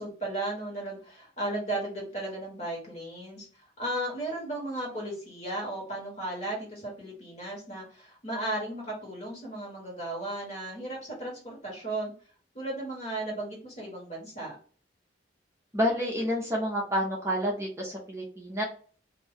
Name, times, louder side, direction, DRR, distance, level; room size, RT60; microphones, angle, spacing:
voice 1, 0.0-12.1 12.5-14.5, right 1 dB, 35° left, -2 dB, 1.4 m, -35 dB
voice 2, 15.7-18.6, equal, 15° right, -2 dB, 0.6 m, -29 dB
2.6 x 2.2 x 3.5 m, 0.42 s
head